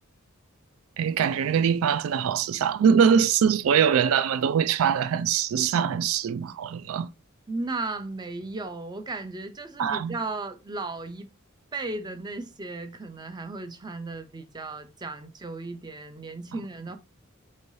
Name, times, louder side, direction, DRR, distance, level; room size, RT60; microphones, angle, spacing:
voice 1, 1.0-7.1 9.8-10.2, right 7 dB, 75° right, 0.3 m, -23 dB
voice 2, 7.5-11.3 11.7-17.0, right 3 dB, 20° right, 0.5 m, -35 dB
4.5 x 3.2 x 2.6 m
head